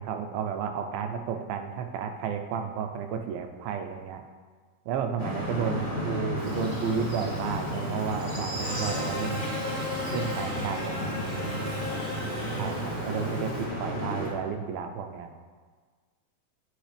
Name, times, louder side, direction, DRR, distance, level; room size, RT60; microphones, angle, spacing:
voice 1, 0.0-4.2 4.9-9.5 10.1-11.2 12.6-15.3, right 7 dB, 85° right, 6 dB, 2.4 m, -32 dB
sound 1, 5.2-14.3, left 1 dB, 25° left, 1.3 m, -33 dB
voice 2, 5.6-6.1 11.0-13.4, left 4 dB, 80° left, 1 dB, 2.0 m, -45 dB
Buzz, 6.4-13.7, left 1 dB, 30° right, 1.3 m, -37 dB
8.7 x 6.5 x 3.3 m, 1.5 s
omnidirectional pair, 4.2 m